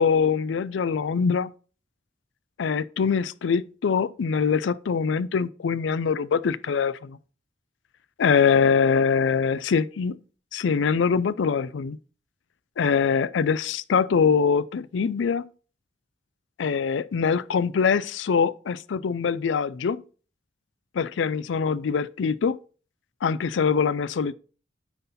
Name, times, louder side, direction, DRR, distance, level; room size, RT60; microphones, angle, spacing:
voice 1, 0.0-1.5 2.6-7.2 8.2-10.2 10.5-12.0 12.8-15.4 16.6-20.0 20.9-22.6 23.2-24.3, left 6 dB, 90° left, 0.4 m, -23 dB
9.5 x 3.9 x 4.1 m
head